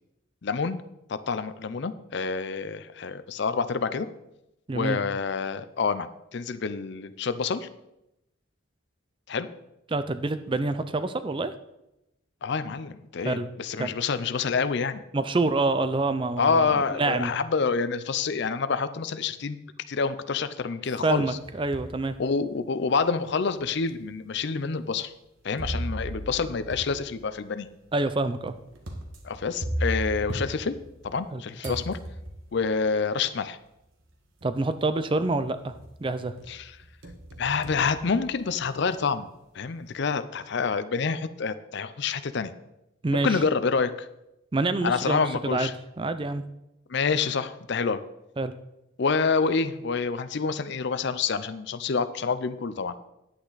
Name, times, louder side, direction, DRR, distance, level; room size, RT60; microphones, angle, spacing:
voice 1, 0.4-0.8 1.1-4.1 4.7-7.7 9.3-9.5 12.4-15.0 16.4-19.6 19.9-21.4 22.2-25.1 25.4-27.7 29.2-30.7 31.0-32.0 32.5-33.6 36.5-36.7 37.4-39.3 39.5-42.5 43.2-44.1 44.8-45.7 46.9-48.0 49.0-53.0, left 5 dB, 55° left, 13 dB, 0.5 m, -27 dB
voice 2, 9.9-11.5 13.2-13.5 13.8-13.9 15.1-16.7 17.0-17.3 21.0-22.2 27.9-28.5 31.3-31.8 34.4-35.7 36.0-36.3 43.0-43.4 44.5-45.7 46.0-46.4 48.4-48.5, right 2 dB, 25° right, 12 dB, 0.4 m, -27 dB
sound 1, 21.1-22.0 22.6-22.7 23.6-23.7 25.6-31.3 31.6-32.6 33.8-33.9 34.4-34.8 35.2-36.0 36.4-38.7, equal, 65° right, 1.5 m, -36 dB
10.0 x 8.7 x 4.0 m, 0.89 s
head